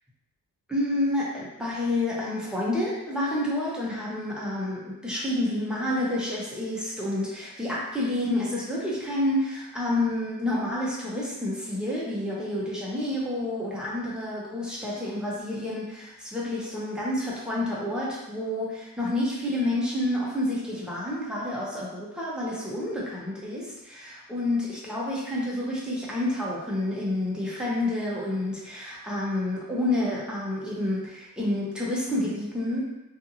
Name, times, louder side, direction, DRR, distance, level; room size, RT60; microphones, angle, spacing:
voice 1, 0.7-32.8, left 1 dB, ahead, -7 dB, 0.7 m, -29 dB
2.5 x 2.5 x 2.7 m, 0.96 s
wide cardioid pair, 130°, 36 cm